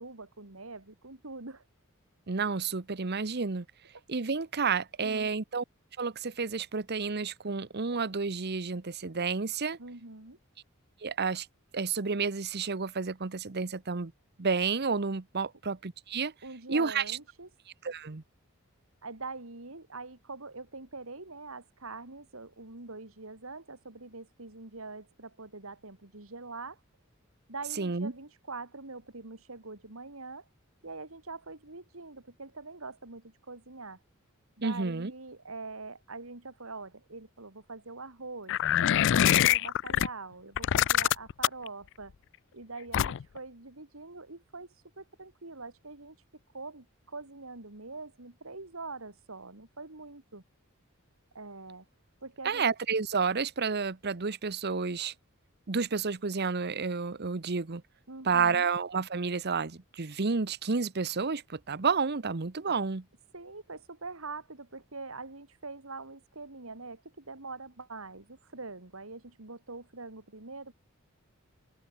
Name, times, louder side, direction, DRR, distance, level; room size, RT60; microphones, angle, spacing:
voice 1, 0.0-1.6 5.0-5.3 9.8-10.4 16.4-17.5 19.0-26.8 27.5-30.5 30.8-34.0 34.6-42.1 42.5-44.7 45.0-46.2 46.5-50.4 51.3-51.9 52.2-52.7 58.1-58.7 63.3-70.7, right 3 dB, 70° right, 2.9 m, -44 dB
voice 2, 2.3-3.6 4.1-5.6 6.0-9.8 11.0-11.5 11.7-14.1 14.4-16.3 16.7-17.2 17.8-18.2 27.8-28.1 34.6-35.1 52.4-55.1 55.7-57.8 58.2-63.0, right 5 dB, 50° right, 1.0 m, -30 dB
sound 1, 38.5-40.1 40.6-41.7 42.9-43.4, left 11 dB, 60° left, 0.4 m, -24 dB
head